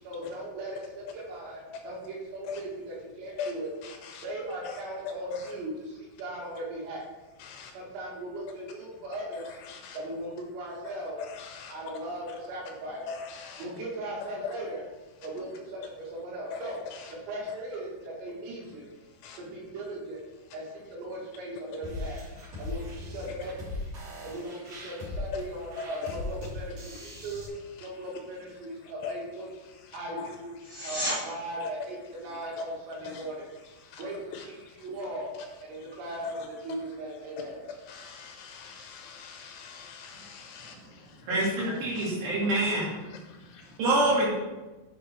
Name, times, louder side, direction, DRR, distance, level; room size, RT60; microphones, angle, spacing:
voice 1, 0.0-3.7 4.2-7.1 7.7-9.6 9.9-11.2 11.7-13.2 13.6-14.9 15.2-18.9 19.4-22.3 22.6-23.8 24.2-29.5 29.9-30.5 30.8-33.5 34.0-35.3 35.6-37.7, right 1 dB, 90° right, -4 dB, 5.1 m, -38 dB
sound 1, 21.8-27.5, left 2 dB, 40° right, 4.1 m, -39 dB
sound 2, 30.6-31.2 42.5-42.6, equal, 15° right, 2.5 m, -31 dB
voice 2, 37.9-40.7 42.0-42.1, left 6 dB, 85° left, 4 dB, 3.0 m, -40 dB
voice 3, 41.3-42.9 43.8-44.3, right 1 dB, 60° right, -6 dB, 4.4 m, -25 dB
9.9 x 5.8 x 4.6 m, 1.2 s
omnidirectional pair, 5.8 m